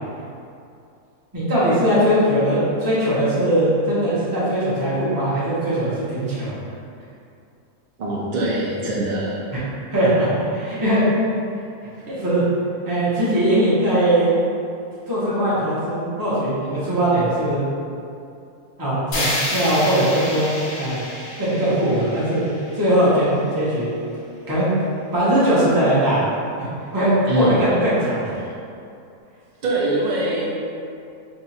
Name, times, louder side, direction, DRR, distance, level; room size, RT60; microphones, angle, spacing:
voice 1, 1.3-6.5 9.9-11.1 12.1-12.4 12.8-14.4 15.1-17.6 18.8-21.0 21.4-22.4 22.7-23.9 24.5-24.7 25.1-26.2 26.6-26.7 26.9-28.3, right 1 dB, 20° right, -10 dB, 0.8 m, -20 dB
voice 2, 8.0-9.5 27.3-27.5 29.6-30.5, right 1 dB, 80° right, -6 dB, 0.4 m, -23 dB
sound 1, 19.1-23.2, left 1 dB, 60° left, 0.4 m, -29 dB
2.8 x 2.4 x 4.0 m, 2.6 s
omnidirectional pair, 1.4 m